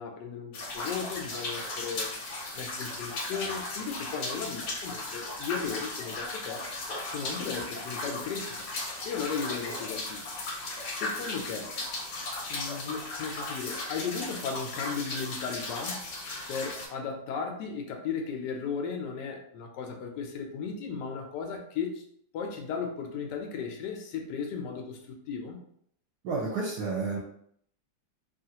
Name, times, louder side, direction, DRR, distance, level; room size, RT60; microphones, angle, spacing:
voice 1, 0.0-2.1 2.5-6.6 7.0-8.7 9.0-10.2 10.9-11.7 12.5-16.0 16.5-22.0 22.3-25.6, left 6 dB, 85° left, 3 dB, 1.2 m, -36 dB
sound 1, 0.5-16.9, left 2 dB, 55° left, 0.9 m, -36 dB
voice 2, 26.2-27.2, right 4 dB, 75° right, -3 dB, 1.1 m, -30 dB
3.0 x 2.4 x 2.8 m, 0.66 s
omnidirectional pair, 1.8 m